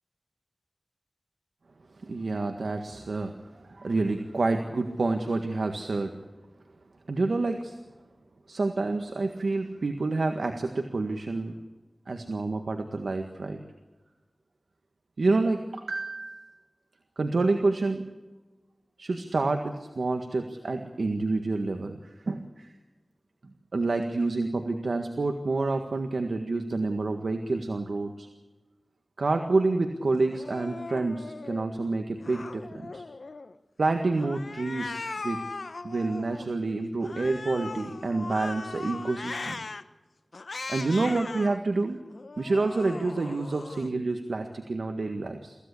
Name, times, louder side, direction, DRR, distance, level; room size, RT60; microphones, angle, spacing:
voice 1, 2.0-6.1 7.1-7.8 8.5-11.6 12.1-13.6 15.2-16.6 17.2-18.0 19.0-22.7 23.7-28.3 29.2-33.0 33.8-35.4 35.8-39.6 40.7-42.0 42.4-45.6, right 3 dB, 85° right, 5 dB, 1.7 m, -28 dB
Cat, 30.3-31.7 32.2-33.6 34.2-36.5 37.0-39.8 40.3-41.6 42.1-43.9, left 3 dB, 75° left, 1.0 m, -39 dB
24.5 x 16.0 x 8.5 m, 1.2 s
wide cardioid pair, 65°, 0 cm